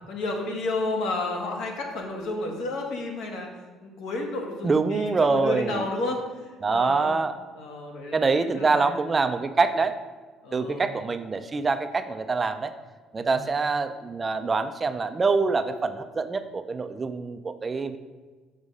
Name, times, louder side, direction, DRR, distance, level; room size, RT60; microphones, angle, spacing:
voice 1, 0.1-3.5 3.8-7.1 7.5-8.3 8.5-9.0 10.4-10.9 13.2-13.3, left 2 dB, 70° left, 1 dB, 1.8 m, -31 dB
voice 2, 4.6-5.9 6.6-7.3 8.1-9.9 10.5-12.7 13.1-18.0, right 4 dB, 20° right, 9 dB, 0.4 m, -25 dB
6.4 x 6.2 x 5.4 m, 1.4 s
cardioid pair, 155°, 0 cm